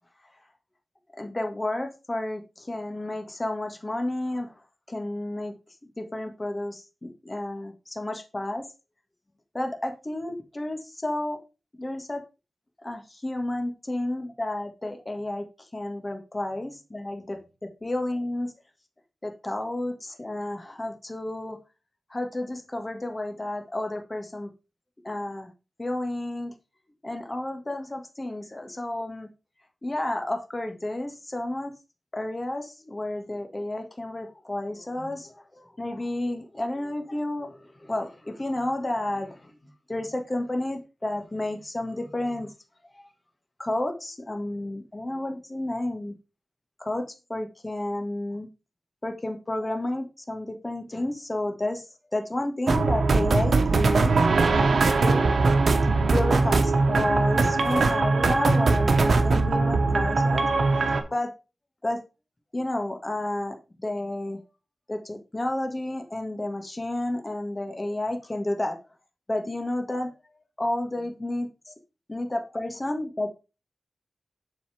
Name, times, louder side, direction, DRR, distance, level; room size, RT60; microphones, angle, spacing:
voice 1, 1.2-4.5 4.9-5.5 6.0-8.7 9.5-11.4 11.8-12.2 12.8-15.4 15.7-17.4 17.8-18.5 19.2-21.6 22.1-24.5 25.0-25.5 25.8-26.5 27.0-29.3 29.8-31.7 32.1-39.5 39.9-42.5 42.9-43.1 43.6-46.1 46.8-48.5 49.0-51.8 52.1-54.1 54.5-55.3 56.1-60.5 61.1-61.3 61.8-62.0 62.5-64.4 64.9-68.8 69.3-70.1 70.6-71.7 72.1-73.4, left 1 dB, 30° left, 5 dB, 1.6 m, -31 dB
sound 1, 52.7-61.0, right 3 dB, 80° right, 1.0 m, -21 dB
7.3 x 4.1 x 4.9 m, 0.29 s
wide cardioid pair, 70°, 0 cm